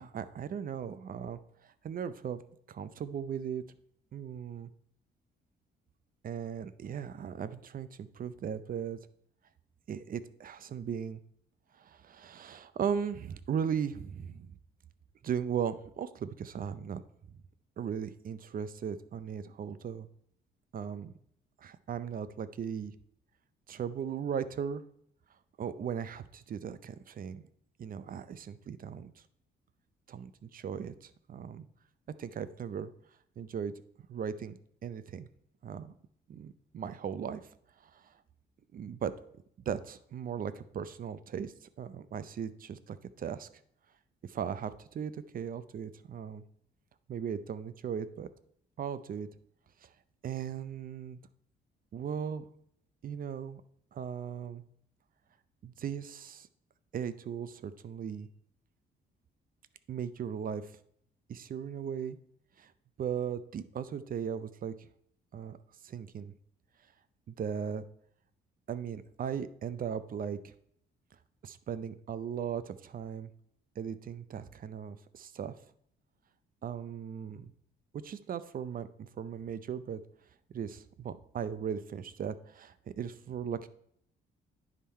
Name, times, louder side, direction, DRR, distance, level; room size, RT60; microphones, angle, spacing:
voice 1, 0.0-2.4 2.7-3.6 4.1-4.7 6.2-9.0 9.9-11.2 11.8-14.5 15.2-17.0 17.8-20.1 20.7-21.1 21.6-22.9 23.7-24.8 25.6-27.4 27.8-29.1 30.1-31.7 32.2-32.9 33.4-33.7 34.1-35.3 35.6-35.9 36.3-37.5 37.8-38.0 38.7-39.1 39.7-43.5 44.2-46.4 47.1-48.3 48.8-49.3 49.8-49.9 50.2-51.2 51.9-52.4 53.0-53.6 53.9-54.6 55.6-56.5 56.9-58.3 59.9-60.7 61.3-62.2 62.6-62.7 63.0-64.7 65.3-65.6 65.8-66.3 67.3-67.8 68.7-70.5 71.4-73.3 73.8-75.5 76.6-77.5 77.9-80.0 80.5-83.7, right 8 dB, 45° right, 14 dB, 0.5 m, -37 dB
10.0 x 3.7 x 4.3 m, 0.68 s
cardioid pair, 90°, 20 cm